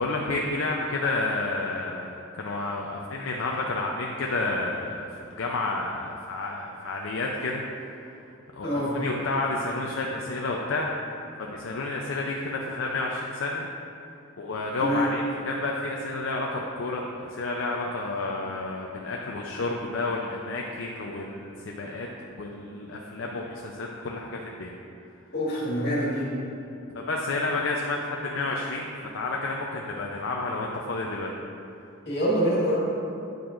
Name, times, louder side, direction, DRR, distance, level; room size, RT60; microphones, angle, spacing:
voice 1, 0.0-7.6 8.0-8.1 8.5-10.9 11.4-13.7 14.4-22.1 22.4-24.8 26.9-31.3, left 2 dB, 70° left, -1 dB, 0.5 m, -30 dB
voice 2, 8.6-9.0 14.8-15.1 25.3-26.3 32.1-32.8, equal, 55° left, -6 dB, 1.8 m, -25 dB
9.3 x 7.0 x 2.5 m, 2.7 s
head